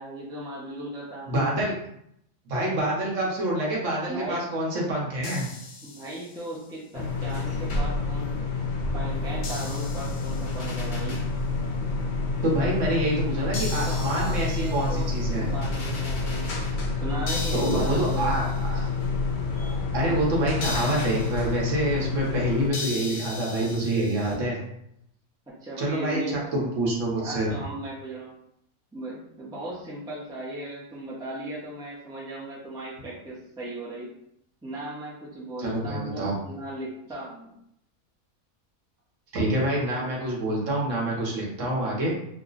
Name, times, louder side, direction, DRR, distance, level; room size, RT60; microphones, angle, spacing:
voice 1, 0.0-1.6 4.1-4.4 5.8-8.4 8.9-11.2 13.7-15.1 15.3-16.5 17.0-18.5 25.5-26.4 27.2-28.3 28.9-34.1 34.6-37.5, right 1 dB, 5° right, -7 dB, 0.6 m, -37 dB
voice 2, 1.3-1.7 2.5-5.5 12.4-15.5 17.5-18.9 19.5-24.6 25.8-27.5 35.6-36.3 39.3-42.1, right 1 dB, 65° right, -3 dB, 1.2 m, -27 dB
sound 1, 5.2-6.7 9.4-11.0 13.5-15.4 17.3-18.7 20.6-21.6 22.7-24.4, left 3 dB, 75° left, 1.1 m, -38 dB
sound 2, 6.9-22.7, left 3 dB, 50° left, 0.6 m, -28 dB
3.1 x 2.1 x 3.8 m, 0.75 s
omnidirectional pair, 1.5 m